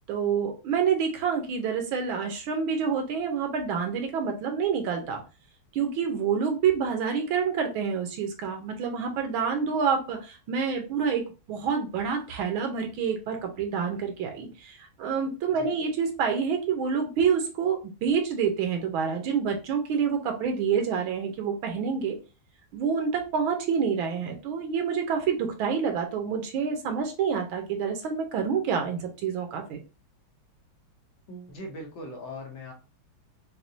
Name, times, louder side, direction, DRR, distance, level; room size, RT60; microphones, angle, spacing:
voice 1, 0.1-5.2 5.7-22.2 22.7-29.8, right 6 dB, 90° right, 4 dB, 1.7 m, -27 dB
voice 2, 31.3-32.7, left 1 dB, 75° left, 1 dB, 1.8 m, -40 dB
6.4 x 2.2 x 2.7 m, 0.32 s
omnidirectional pair, 2.2 m